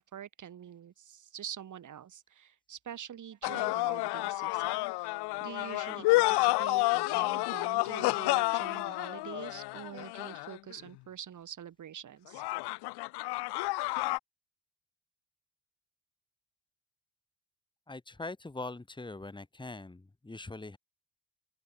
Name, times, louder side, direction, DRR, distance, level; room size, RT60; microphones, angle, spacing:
voice 1, 0.0-12.4, right 9 dB, 50° right, 5.5 m, -46 dB
sound 1, 3.4-10.7 12.3-14.2, left 22 dB, 90° left, 1.7 m, -30 dB
voice 2, 17.9-20.8, left 2 dB, 10° left, 3.7 m, -42 dB
open air
cardioid pair, 110°, 39 cm